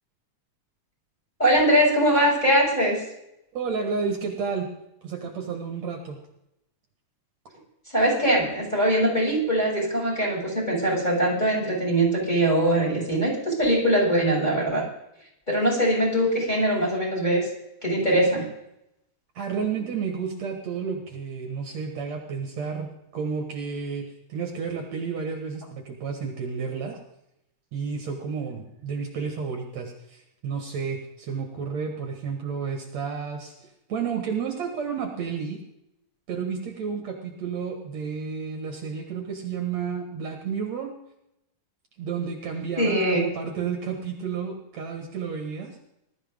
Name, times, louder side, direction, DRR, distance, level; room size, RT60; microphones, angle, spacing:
voice 1, 1.4-3.0 7.9-14.8 15.5-17.5 17.8-18.5 42.8-43.3, right 1 dB, 15° left, -2 dB, 6.5 m, -22 dB
voice 2, 3.5-4.7 5.0-6.2 19.4-27.0 27.7-33.5 33.9-35.6 36.3-40.9 42.0-45.7, right 6 dB, 65° right, 2 dB, 2.8 m, -31 dB
19.5 x 13.0 x 3.7 m, 0.82 s
omnidirectional pair, 3.5 m